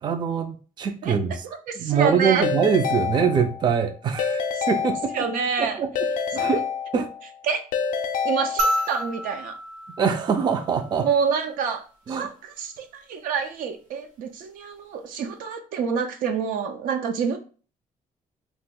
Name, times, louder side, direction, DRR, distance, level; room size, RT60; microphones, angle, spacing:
voice 1, 0.0-1.4 1.8-5.1 5.6-5.9 6.3-6.7 6.9-7.1 10.0-11.1 12.1-12.3, right 6 dB, 30° right, 0.4 m, -23 dB
voice 2, 1.7-2.5 5.1-5.8 6.4-6.5 7.5-7.6 8.2-9.6 11.0-17.4, right 6 dB, 80° right, 0.5 m, -27 dB
Keyboard (musical) / Ringtone, 2.4-3.8 4.2-5.5 6.0-7.3 7.7-9.1, left 6 dB, 70° left, 0.4 m, -28 dB
sound 1, 8.6-11.1 12.8-12.9, equal, 60° right, 0.8 m, -29 dB
3.0 x 2.3 x 3.6 m
cardioid pair, 125°, 14 cm